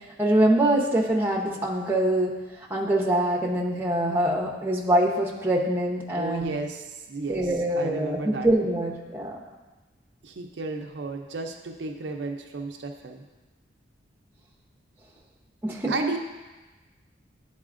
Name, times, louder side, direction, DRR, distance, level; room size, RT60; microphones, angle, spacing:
voice 1, 0.2-2.4 2.7-6.5 7.3-9.4 15.6-15.9, right 1 dB, 10° right, -3 dB, 0.7 m, -24 dB
voice 2, 6.2-8.5 10.2-13.2 15.9-16.2, right 3 dB, 65° right, 4 dB, 0.5 m, -33 dB
10.5 x 4.2 x 2.5 m, 1.2 s
head